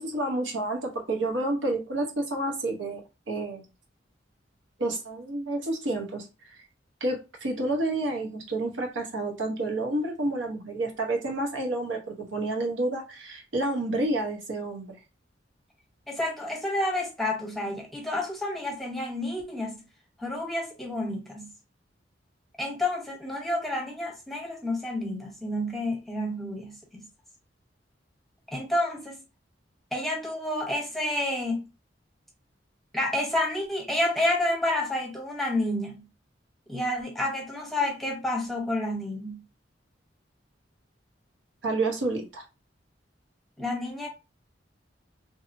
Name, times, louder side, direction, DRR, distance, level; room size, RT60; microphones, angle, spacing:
voice 1, 0.0-3.6 4.8-6.3 7.0-15.0 41.6-42.4, right 2 dB, 85° right, 0.9 m, -29 dB
voice 2, 16.1-19.7 20.2-21.5 22.6-27.1 28.5-29.2 29.9-31.6 32.9-36.0 36.7-39.4 43.6-44.1, left 1 dB, ahead, 0.7 m, -29 dB
2.7 x 2.7 x 2.5 m
head